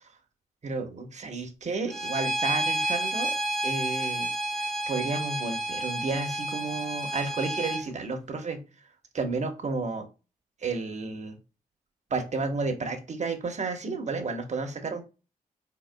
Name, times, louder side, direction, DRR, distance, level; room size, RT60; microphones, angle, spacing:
voice 1, 0.6-3.3 3.6-4.3 4.6-8.6 9.1-10.1 10.6-11.4 12.1-15.0, right 3 dB, 50° right, 5 dB, 1.0 m, -32 dB
Bowed string instrument, 1.9-7.8, right 1 dB, 5° left, 1.1 m, -30 dB
4.0 x 3.9 x 2.2 m, 0.31 s
supercardioid pair, 50°, 16 cm